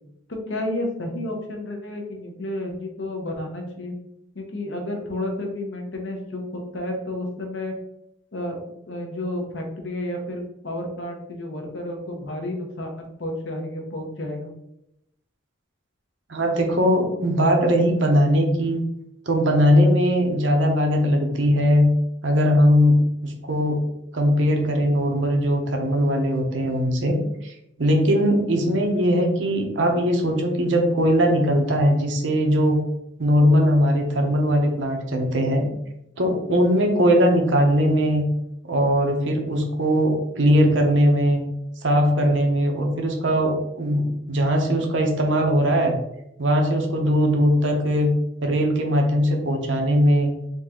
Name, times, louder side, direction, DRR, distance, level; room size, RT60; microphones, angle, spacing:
voice 1, 0.3-3.9 4.3-7.7 8.3-8.6 8.9-14.5, left 1 dB, 70° left, 2 dB, 0.9 m, -31 dB
voice 2, 16.3-18.8 19.3-21.9 22.2-23.0 23.2-23.8 24.1-27.2 27.4-27.5 27.8-32.8 33.2-35.7 36.2-38.2 38.7-41.4 41.8-46.0 46.4-48.1 48.4-50.3, equal, 70° right, 2 dB, 0.9 m, -20 dB
4.0 x 2.9 x 3.7 m, 0.82 s
head